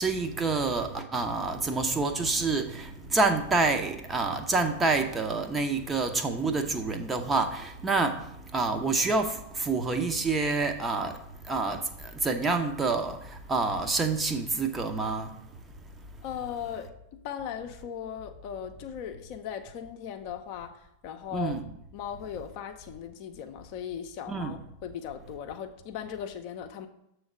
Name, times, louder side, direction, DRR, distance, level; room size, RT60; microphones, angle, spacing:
voice 1, 0.0-15.4 21.3-21.6 24.3-24.5, right 3 dB, 15° right, 0.7 m, -28 dB
voice 2, 16.2-16.9 17.2-21.6 21.9-26.9, left 9 dB, 45° left, 0.6 m, -38 dB
7.1 x 3.2 x 6.1 m
figure-of-eight pair, 90°, 0 cm